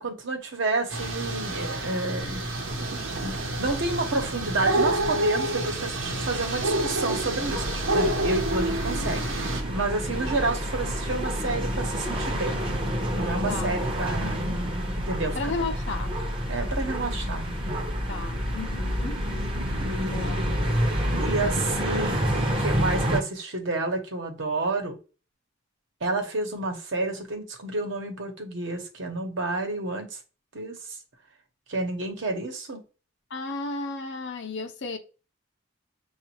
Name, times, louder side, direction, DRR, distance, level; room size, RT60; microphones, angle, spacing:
voice 1, 0.0-2.4 3.2-12.6 13.1-14.4 15.0-15.5 16.5-17.8 19.8-20.6 21.2-25.0 26.0-30.2 30.5-30.8 31.7-32.8, right 2 dB, 65° right, 1.0 m, -30 dB
sound 1, 0.9-9.6, right 1 dB, 85° right, 0.9 m, -29 dB
sound 2, 2.1-10.6, right 3 dB, 45° right, 0.3 m, -40 dB
sound 3, 7.4-23.2, equal, 25° right, 0.7 m, -28 dB
voice 2, 14.1-14.6 15.3-16.2 18.1-19.2 20.1-20.4 33.3-35.0, left 3 dB, 60° left, 0.7 m, -34 dB
7.0 x 2.4 x 2.9 m
head